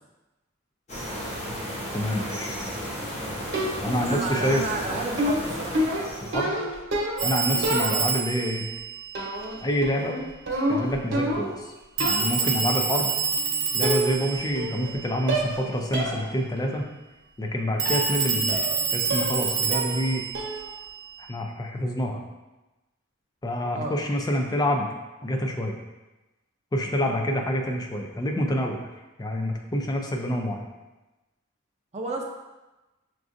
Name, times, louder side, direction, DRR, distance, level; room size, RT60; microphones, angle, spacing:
sound 1, 0.9-6.4, equal, 35° left, 0.9 m, -34 dB
voice 1, 1.9-2.6 3.8-4.6 4.9-5.1 6.2-6.5 7.2-8.6 9.6-10.2 10.7-11.7 12.0-13.1 13.7-16.9 17.4-18.6 18.9-20.2 21.3-22.2 23.4-24.9 25.2-25.8 26.7-28.9 29.2-30.7, equal, 20° left, 2 dB, 0.4 m, -27 dB
sound 2, 3.5-4.1 5.2-7.3 7.6-8.3 9.1-9.6 9.8-11.6 12.0-12.4 13.3-13.4 13.8-14.3 14.6-15.0 15.3-15.6 15.9-16.2 16.6-16.7 17.8-18.1 18.5-18.8 19.1-19.4 19.7-20.1 20.3-20.7, right 1 dB, 65° right, 0.9 m, -28 dB
voice 2, 4.0-5.8 7.5-7.7 23.7-24.0 31.9-32.2, right 3 dB, 35° right, 1 dB, 0.5 m, -32 dB
Telephone, 7.2-9.8 12.0-15.6 17.8-21.3, right 6 dB, 85° right, 0.6 m, -28 dB
6.0 x 2.4 x 2.5 m, 1.1 s
head